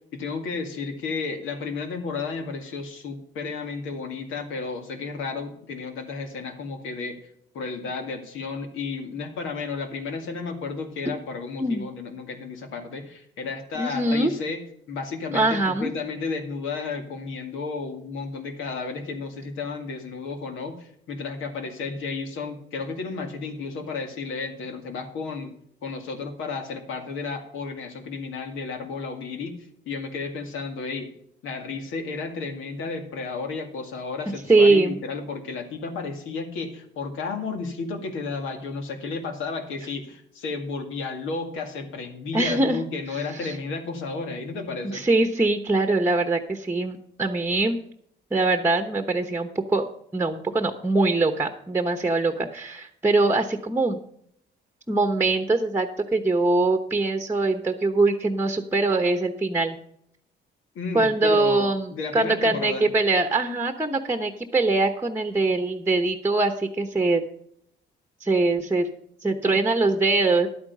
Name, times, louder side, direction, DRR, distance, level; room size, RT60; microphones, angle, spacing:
voice 1, 0.1-7.1 7.5-14.6 14.9-25.5 25.8-29.6 29.9-31.1 31.4-45.0 60.8-62.9, left 4 dB, 85° left, 5 dB, 2.2 m, -32 dB
voice 2, 13.7-14.3 15.3-15.9 34.5-35.0 42.3-42.8 43.1-43.6 44.8-47.8 48.3-49.9 50.1-54.0 54.9-59.8 60.9-67.2 68.2-68.9 69.2-70.5, right 2 dB, 10° right, 7 dB, 1.0 m, -22 dB
11.5 x 8.9 x 5.4 m, 0.69 s
cardioid pair, 90°, 20 cm